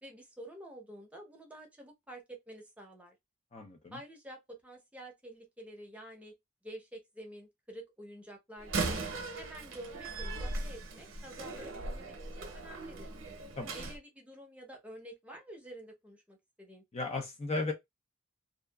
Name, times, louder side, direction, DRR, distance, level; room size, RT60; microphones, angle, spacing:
voice 1, 0.0-3.1 3.9-6.3 6.6-9.0 9.4-13.1 13.7-16.8, right 1 dB, 5° right, 0.7 m, -49 dB
voice 2, 3.5-4.0 13.6-13.8 16.9-17.7, left 3 dB, 30° left, 0.4 m, -35 dB
Slam, 8.6-14.0, right 3 dB, 75° right, 0.7 m, -38 dB
2.7 x 2.3 x 2.2 m
head